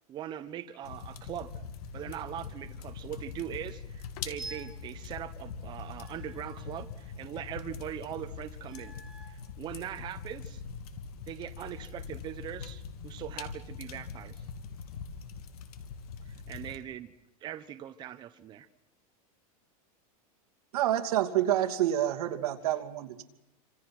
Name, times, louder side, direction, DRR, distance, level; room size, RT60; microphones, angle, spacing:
voice 1, 0.1-1.5 1.9-8.9 9.3-10.6 11.3-14.5 16.3-17.1 17.4-18.7, right 11 dB, 25° right, 11 dB, 0.9 m, -41 dB
sound 1, 0.8-16.8, left 6 dB, 90° left, 2.8 m, -43 dB
sound 2, 4.4-4.9 6.0-7.3 8.6-9.5, right 3 dB, ahead, 2.3 m, -48 dB
voice 2, 20.7-23.2, right 12 dB, 85° right, 5 dB, 2.7 m, -28 dB
28.0 x 26.5 x 6.1 m, 0.92 s
supercardioid pair, 165°, 19 cm